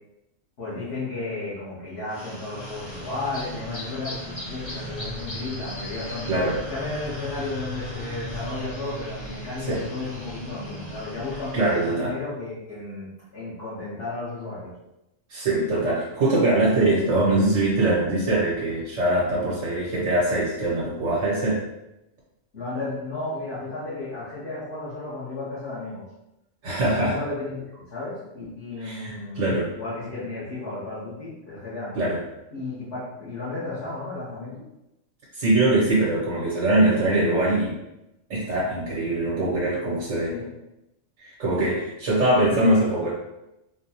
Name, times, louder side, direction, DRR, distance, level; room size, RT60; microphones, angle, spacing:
voice 1, 0.6-6.3 6.7-14.7 22.5-26.0 26.9-29.5 29.7-32.0 32.5-34.6 40.3-40.5, left 3 dB, 50° left, -12 dB, 1.4 m, -33 dB
sound 1, 2.1-12.0, equal, 25° left, 0.7 m, -37 dB
voice 2, 6.3-6.6 9.7-9.8 11.5-12.1 15.3-21.6 26.6-27.2 28.8-29.7 31.9-32.2 35.3-37.7 38.3-40.3 41.2-43.1, right 2 dB, 75° right, -6 dB, 1.4 m, -22 dB
4.3 x 2.3 x 2.9 m, 0.89 s
omnidirectional pair, 1.3 m